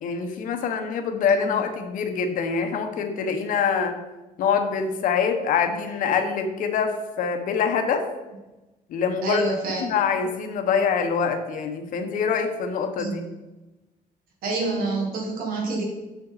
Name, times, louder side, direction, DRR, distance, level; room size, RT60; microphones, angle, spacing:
voice 1, 0.0-3.9 4.4-8.0 8.9-9.4 9.8-13.2, left 6 dB, 65° left, 6 dB, 1.0 m, -25 dB
voice 2, 9.2-9.8 13.0-13.1 14.4-15.8, right 3 dB, 70° right, 0 dB, 1.6 m, -27 dB
6.9 x 6.4 x 4.0 m, 1.1 s
cardioid pair, 175°, 15 cm